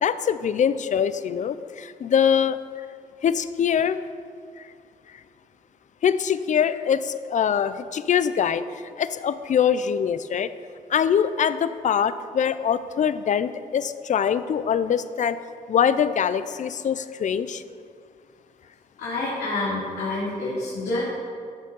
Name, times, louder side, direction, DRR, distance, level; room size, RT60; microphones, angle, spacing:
voice 1, 0.0-2.6 3.2-4.0 4.6-4.7 6.0-8.6 9.0-10.5 10.9-15.4 15.7-17.6, left 8 dB, 50° left, 13 dB, 0.5 m, -23 dB
voice 2, 19.0-21.0, left 2 dB, 90° left, -9 dB, 3.0 m, -28 dB
13.5 x 6.5 x 5.4 m, 2.3 s
cardioid pair, 90°, 16 cm